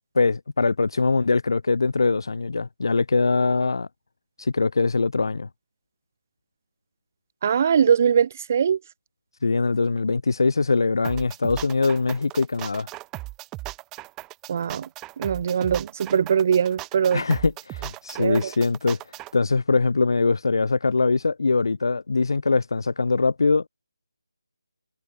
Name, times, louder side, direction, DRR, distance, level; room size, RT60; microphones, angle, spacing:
voice 1, 0.2-3.9 4.4-5.5 9.4-12.9 17.1-19.0 19.3-23.7, left 4 dB, 60° left, 1.9 m, -22 dB
voice 2, 7.4-8.8 14.5-14.9 15.2-17.2 18.2-18.5, right 7 dB, 30° right, 1.7 m, -21 dB
sound 1, 11.0-19.3, right 19 dB, 10° right, 3.3 m, -38 dB
figure-of-eight pair, 170°, 2 cm